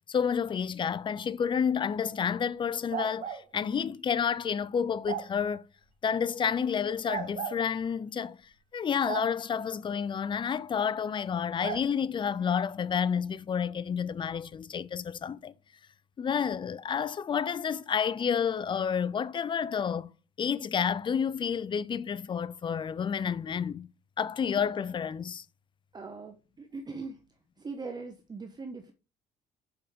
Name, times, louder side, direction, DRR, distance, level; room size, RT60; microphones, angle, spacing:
voice 1, 0.1-5.6 6.0-8.4 8.7-15.5 16.2-20.1 20.4-23.9 24.2-25.4, left 7 dB, 30° left, 0.4 m, -30 dB
sound 1, 2.9-3.4 5.0-5.3 7.0-7.6 9.0-9.3 11.6-11.8, right 8 dB, 50° right, 1.5 m, -35 dB
voice 2, 25.9-27.2 27.6-28.9, right 4 dB, 25° right, 0.9 m, -40 dB
7.0 x 5.1 x 3.5 m
cardioid pair, 110°, 17 cm